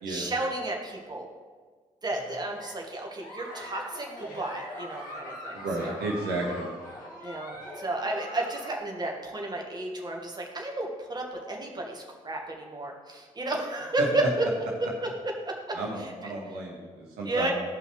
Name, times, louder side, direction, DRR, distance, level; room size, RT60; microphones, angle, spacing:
voice 1, 0.1-1.3 2.0-6.0 7.2-14.4 14.8-16.3 17.2-17.5, right 2 dB, 25° right, 0 dB, 1.5 m, -32 dB
Giggle, 2.1-8.8, equal, 50° left, 1.9 m, -42 dB
voice 2, 5.5-6.7 14.0-14.1 15.7-17.5, right 2 dB, 65° right, -2 dB, 1.5 m, -32 dB
14.5 x 5.5 x 3.1 m, 1.5 s
figure-of-eight pair, 40°, 17 cm